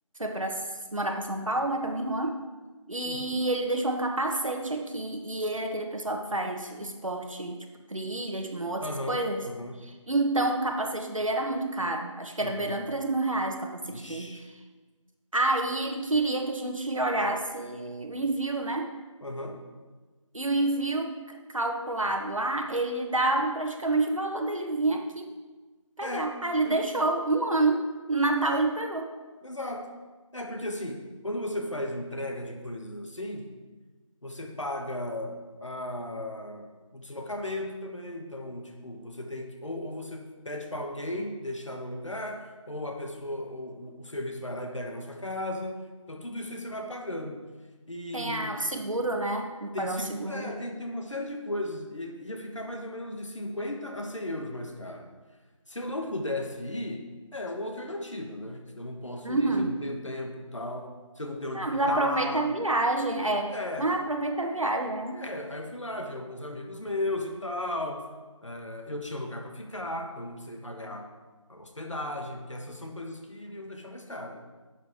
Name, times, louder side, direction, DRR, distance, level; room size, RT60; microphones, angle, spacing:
voice 1, 0.2-0.6 0.9-2.4 2.9-9.4 9.8-14.4 15.3-18.9 20.3-21.1 21.5-25.3 26.0-29.1 48.1-50.5 59.2-59.8 61.5-65.2, right 2 dB, 75° right, 4 dB, 1.4 m, -28 dB
voice 2, 3.0-3.4 8.8-9.8 12.4-12.7 13.8-14.4 19.2-19.6 26.0-26.3 26.6-26.8 28.4-28.7 29.4-29.9 30.3-33.5 34.2-47.4 47.9-48.7 49.7-55.1 55.7-62.4 63.5-63.9 65.1-68.0 68.4-71.1 71.5-74.4, left 1 dB, 65° left, 3 dB, 1.5 m, -36 dB
11.0 x 7.5 x 3.6 m, 1.3 s
figure-of-eight pair, 180°, 17 cm